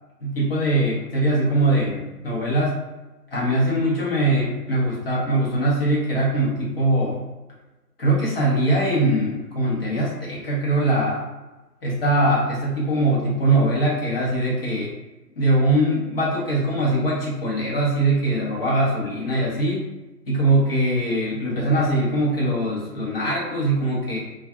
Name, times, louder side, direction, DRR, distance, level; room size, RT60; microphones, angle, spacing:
voice 1, 0.2-2.7 3.3-7.2 8.0-11.2 11.8-14.9 15.4-19.8 20.3-24.2, right 1 dB, 40° left, -5 dB, 0.9 m, -22 dB
2.3 x 2.3 x 2.5 m, 1.1 s
figure-of-eight pair, 150°, 48 cm